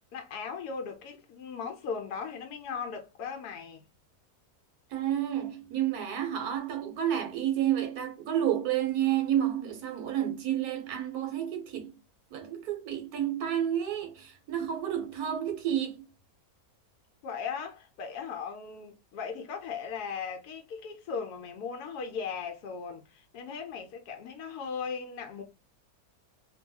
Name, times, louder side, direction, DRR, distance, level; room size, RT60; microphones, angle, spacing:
voice 1, 0.1-3.8 17.2-25.4, left 6 dB, 90° left, 1.2 m, -38 dB
voice 2, 4.9-12.0 12.3-16.0, right 11 dB, 85° right, 1.3 m, -30 dB
3.0 x 2.3 x 2.7 m
omnidirectional pair, 1.6 m